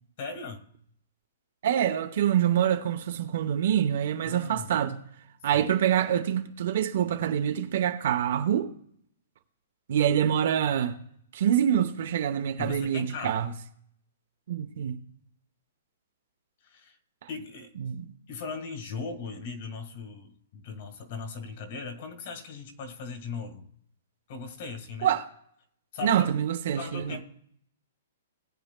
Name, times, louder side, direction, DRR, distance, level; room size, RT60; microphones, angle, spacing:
voice 1, 0.2-0.6 4.3-4.7 5.5-5.6 12.6-13.4 16.6-17.0 17.3-17.7 18.3-23.7 24.3-25.1 25.9-26.2 26.8-27.2, left 4 dB, 40° left, 1.6 m, -38 dB
voice 2, 1.6-5.0 5.4-8.7 9.9-11.0 11.3-13.5 14.5-15.0 17.8-18.1 25.0-25.2 26.0-27.2, right 9 dB, 45° right, 0.8 m, -26 dB
19.5 x 9.1 x 2.2 m
hypercardioid pair, 175°, 0 cm